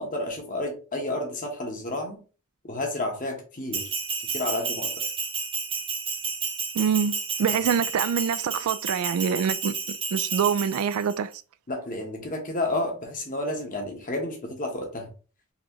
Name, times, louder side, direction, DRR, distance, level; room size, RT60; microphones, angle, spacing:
voice 1, 0.0-2.2 2.7-3.8 4.3-4.9 11.7-15.1, left 1 dB, 40° left, 1.1 m, -31 dB
Bell, 3.7-11.1, right 5 dB, 25° right, 0.6 m, -31 dB
voice 2, 6.7-11.3, right 7 dB, 70° right, 0.3 m, -25 dB
4.0 x 3.0 x 2.9 m
head